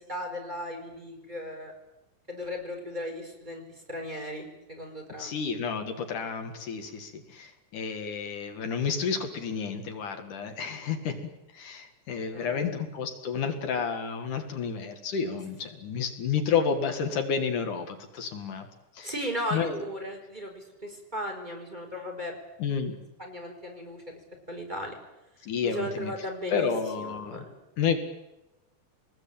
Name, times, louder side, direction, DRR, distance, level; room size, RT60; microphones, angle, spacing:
voice 1, 0.1-1.7 2.3-3.6 3.9-5.3 12.3-12.8 19.0-22.3 23.2-24.2 24.5-24.9 25.6-26.7 27.0-27.7, equal, 15° right, 1 dB, 5.1 m, -36 dB
voice 2, 5.2-11.1 11.5-18.7 19.0-19.1 19.5-19.9 22.6-23.0 25.4-26.1 26.5-27.5 27.8-28.0, left 6 dB, 80° left, 6 dB, 3.6 m, -30 dB
26.0 x 20.0 x 8.8 m, 0.96 s
omnidirectional pair, 3.6 m